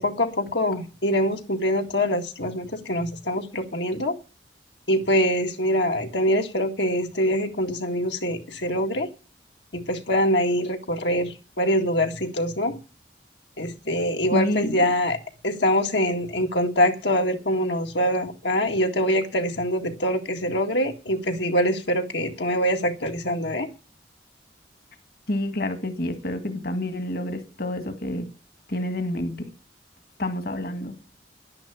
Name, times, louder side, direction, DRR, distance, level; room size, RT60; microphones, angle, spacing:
voice 1, 0.0-4.2 4.9-9.1 9.7-12.8 13.6-15.2 15.4-23.7, equal, 80° left, 1.9 m, -24 dB
voice 2, 14.3-14.8 25.3-28.3 28.7-29.5 30.2-30.9, left 1 dB, 55° left, 1.8 m, -28 dB
11.0 x 10.5 x 7.1 m
head